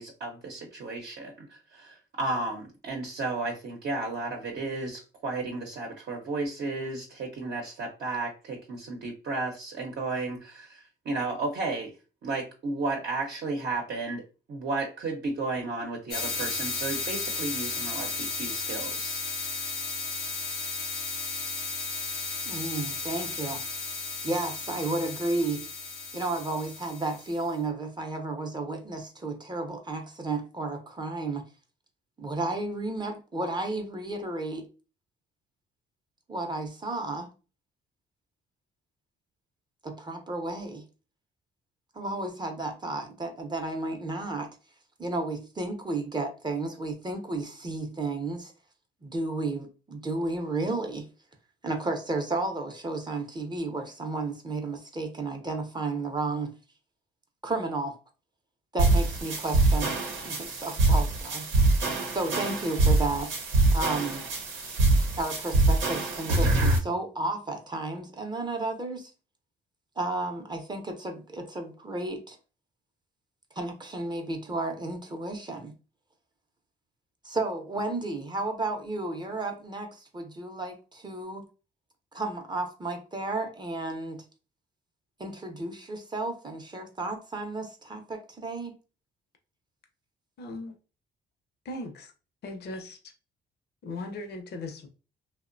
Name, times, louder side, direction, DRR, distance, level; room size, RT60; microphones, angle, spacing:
voice 1, 0.0-11.9 12.2-14.2 14.5-19.2, right 3 dB, 55° right, 0.7 m, -33 dB
sound 1, 16.1-27.4, left 3 dB, 80° left, 0.9 m, -34 dB
voice 2, 22.5-23.6 24.2-25.7 26.1-31.4 32.2-34.7 36.3-37.3 39.8-40.8 41.9-44.5 45.0-48.5 49.0-51.1 51.6-56.5 57.4-58.0 58.7-61.5 62.1-63.3 63.7-64.3 65.2-69.1 70.0-72.4 73.6-75.7 77.2-81.4 82.1-84.2 85.2-88.7, right 2 dB, 20° right, 0.6 m, -32 dB
sound 2, 58.8-66.8, right 2 dB, 90° right, 0.7 m, -24 dB
voice 3, 90.4-90.8 91.6-92.1 92.4-93.0 93.8-94.9, left 2 dB, 55° left, 0.6 m, -38 dB
2.7 x 2.1 x 2.5 m
cardioid pair, 90°, 20 cm